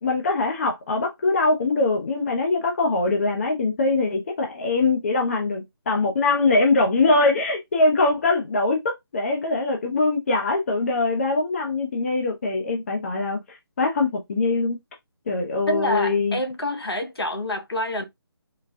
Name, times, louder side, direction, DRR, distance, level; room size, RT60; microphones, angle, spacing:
voice 1, 0.0-8.8 9.1-14.8 15.3-16.4, left 3 dB, 35° left, 0.6 m, -22 dB
voice 2, 15.7-18.0, left 1 dB, 70° left, 1.1 m, -27 dB
3.8 x 2.2 x 2.6 m
figure-of-eight pair, 155°, 13 cm